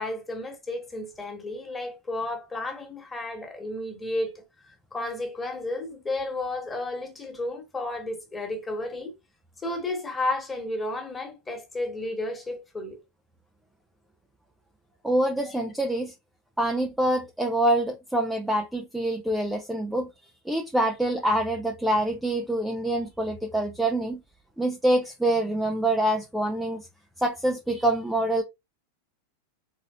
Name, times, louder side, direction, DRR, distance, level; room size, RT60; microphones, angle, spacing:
voice 1, 0.0-9.1 9.6-13.0 15.5-15.6, left 2 dB, 15° left, 1.5 m, -32 dB
voice 2, 15.0-16.1 16.6-20.1 20.4-24.2 24.6-26.9 27.2-28.4, right 1 dB, 5° right, 0.5 m, -25 dB
4.1 x 3.9 x 2.5 m
figure-of-eight pair, 90°, 0 cm